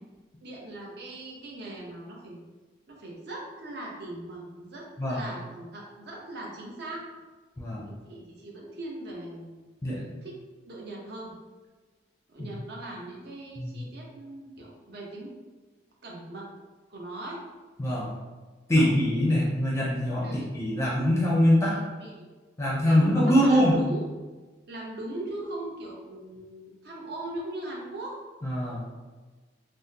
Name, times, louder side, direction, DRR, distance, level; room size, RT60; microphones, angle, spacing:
voice 1, 0.4-2.4 2.9-7.0 7.8-9.7 10.2-10.4 10.7-11.3 12.3-15.3 16.0-16.5 16.9-17.4 18.7-18.9 20.2-20.5 21.7-22.3 22.8-24.0 24.7-28.2, right 1 dB, 65° right, -2 dB, 0.7 m, -40 dB
voice 2, 7.6-7.9 9.8-10.0 12.4-12.5 13.6-13.8 17.8-18.1 18.7-20.3 20.5-21.8 22.6-23.8 28.4-28.9, equal, 15° left, -5 dB, 0.4 m, -23 dB
3.5 x 2.0 x 2.7 m, 1.3 s
head